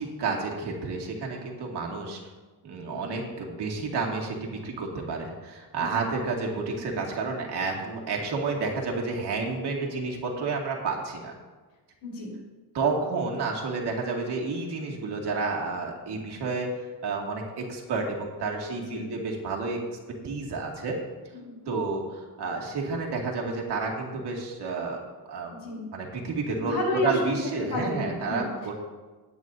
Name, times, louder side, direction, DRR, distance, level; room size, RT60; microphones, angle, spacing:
voice 1, 0.0-2.2 2.6-11.3 12.7-20.0 20.2-21.0 21.7-25.5 25.9-28.8, right 4 dB, 75° right, -1 dB, 2.3 m, -30 dB
voice 2, 12.0-12.3 18.7-19.1 21.3-21.7 25.5-25.8 26.6-27.1 27.7-28.5, left 2 dB, 80° left, -2 dB, 4.2 m, -32 dB
18.0 x 9.2 x 2.7 m, 1.3 s
wide cardioid pair, 165°, 40 cm